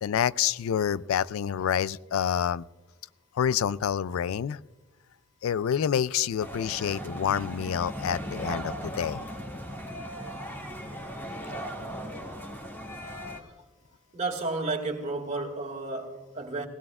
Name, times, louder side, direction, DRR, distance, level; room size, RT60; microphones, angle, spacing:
voice 1, 0.0-2.6 3.4-4.6 5.4-9.2, left 8 dB, 85° left, 0.3 m, -27 dB
sound 1, 6.4-13.4, equal, 10° left, 2.0 m, -37 dB
voice 2, 14.1-16.7, right 3 dB, 35° right, 2.1 m, -32 dB
19.0 x 17.0 x 2.4 m
head